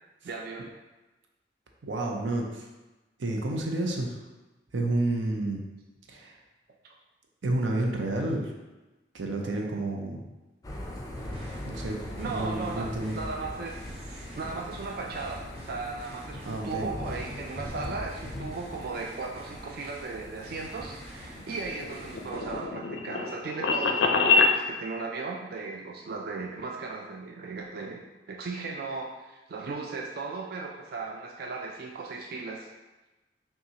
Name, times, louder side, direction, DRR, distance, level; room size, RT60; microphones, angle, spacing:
voice 1, 0.2-0.7 6.8-6.9 12.2-12.9 13.1-28.0 28.3-32.7, right 4 dB, 55° right, 0 dB, 0.3 m, -37 dB
voice 2, 1.8-2.7 3.2-4.2 4.7-5.6 6.1-6.4 7.4-8.5 9.1-10.2 11.7-13.2 16.4-16.9, right 2 dB, 90° right, 1 dB, 0.6 m, -30 dB
Thunder / Rain, 10.6-22.3, left 1 dB, 20° left, 0.4 m, -41 dB
sound 1, 11.1-22.7, equal, 35° right, 1.2 m, -47 dB
sound 2, 21.5-24.6, left 4 dB, 80° left, 0.4 m, -25 dB
5.5 x 2.3 x 2.8 m, 1.1 s
head